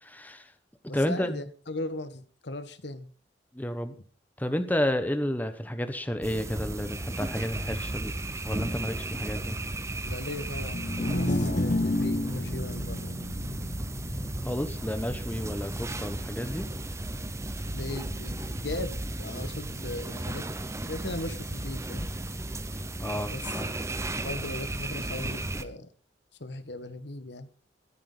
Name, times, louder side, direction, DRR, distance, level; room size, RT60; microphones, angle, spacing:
voice 1, 0.0-0.5 0.9-1.4 3.5-3.9 4.4-8.1 8.4-9.6 14.4-16.7 23.0-23.8, left 1 dB, 10° left, 9 dB, 1.2 m, -31 dB
voice 2, 0.9-3.1 10.0-13.2 17.7-20.4 20.9-22.1 23.3-23.5 24.2-25.9 26.4-27.5, left 2 dB, 65° left, 12 dB, 1.4 m, -38 dB
sound 1, 6.2-25.6, right 1 dB, 15° right, 0.9 m, -35 dB
sound 2, 10.7-17.0, left 1 dB, 45° left, 1.1 m, -32 dB
sound 3, 11.0-13.4, equal, 50° right, 5.1 m, -44 dB
22.5 x 9.5 x 4.0 m, 0.38 s
head